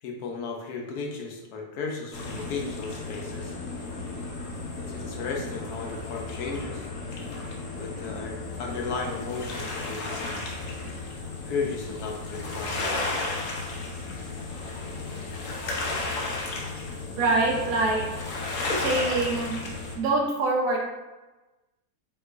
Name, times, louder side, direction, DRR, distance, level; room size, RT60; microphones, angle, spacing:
voice 1, 0.0-3.6 4.7-6.9 7.8-10.4 11.4-13.0, left 4 dB, 80° left, 0 dB, 1.3 m, -35 dB
sound 1, 2.1-20.0, left 3 dB, 60° left, 1.1 m, -34 dB
voice 2, 17.2-18.0 18.8-19.5 20.0-20.8, right 2 dB, 65° right, -2 dB, 1.2 m, -24 dB
5.5 x 3.1 x 2.5 m, 1.1 s
omnidirectional pair, 1.7 m